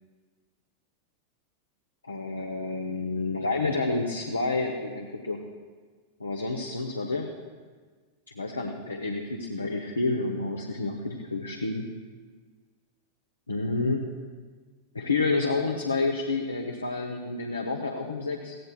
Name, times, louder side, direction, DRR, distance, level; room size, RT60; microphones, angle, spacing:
voice 1, 2.1-5.4 6.2-7.3 8.3-11.9 13.5-14.0 14.9-18.6, left 3 dB, 80° left, 2 dB, 1.0 m, -29 dB
19.0 x 15.5 x 2.3 m, 1.5 s
figure-of-eight pair, 90°, 0 cm